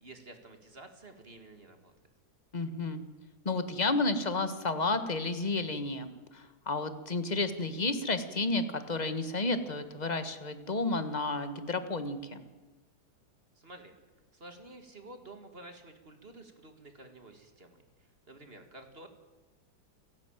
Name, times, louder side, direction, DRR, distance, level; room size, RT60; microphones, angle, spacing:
voice 1, 0.0-1.9 13.5-14.0 14.3-19.1, right 2 dB, 30° right, 6 dB, 2.3 m, -51 dB
voice 2, 2.5-3.0 3.4-12.4, left 3 dB, 25° left, 10 dB, 1.3 m, -31 dB
28.5 x 11.5 x 8.9 m, 1.2 s
omnidirectional pair, 2.0 m